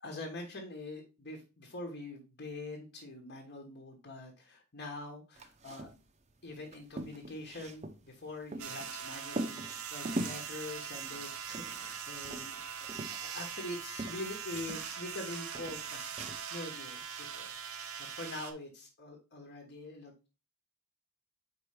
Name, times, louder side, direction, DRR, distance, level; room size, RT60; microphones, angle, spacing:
voice 1, 0.0-5.9 6.4-12.9 13.2-17.9 18.1-20.3, left 2 dB, 50° left, 0 dB, 1.2 m, -44 dB
sound 1, 5.4-6.0 6.3-6.4 6.7-8.9 9.3-10.4 11.0-12.0 12.2-13.7 14.0-15.2 15.5-16.4, right 1 dB, 30° right, 0.6 m, -41 dB
sound 2, 8.6-18.5, right 7 dB, 85° right, 0.9 m, -42 dB
4.6 x 4.3 x 4.9 m, 0.31 s
head